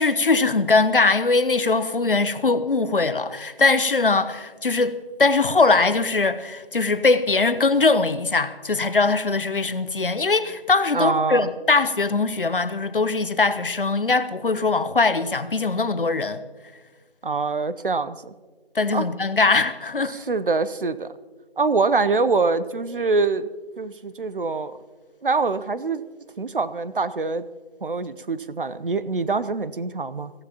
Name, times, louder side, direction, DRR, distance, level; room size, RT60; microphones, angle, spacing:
voice 1, 0.0-16.4 18.7-20.2, left 3 dB, 60° left, 0.8 m, -21 dB
voice 2, 10.9-11.5 17.2-18.3 18.9-19.1 20.1-21.1 21.6-23.5 23.8-24.8 25.2-26.0 26.4-27.5 27.8-30.3, right 4 dB, 60° right, 0.7 m, -24 dB
23.0 x 16.0 x 2.9 m
figure-of-eight pair, 175°, 31 cm